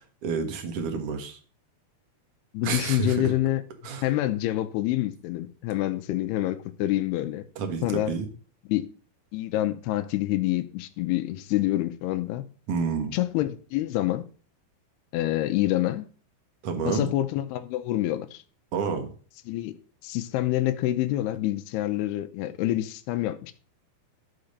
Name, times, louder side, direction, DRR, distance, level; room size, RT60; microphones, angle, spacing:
voice 1, 0.0-1.4 2.6-3.3 3.8-4.1 7.6-8.3 12.7-13.2 16.6-17.1 18.7-19.1, right 5 dB, 55° right, 1.8 m, -29 dB
voice 2, 2.5-3.6 4.0-7.4 7.8-8.1 8.7-8.9 9.3-12.4 13.1-14.2 15.1-16.1 16.9-18.4 19.5-19.7 20.0-23.5, left 15 dB, 85° left, 2.8 m, -27 dB
12.0 x 4.9 x 6.5 m
omnidirectional pair, 4.6 m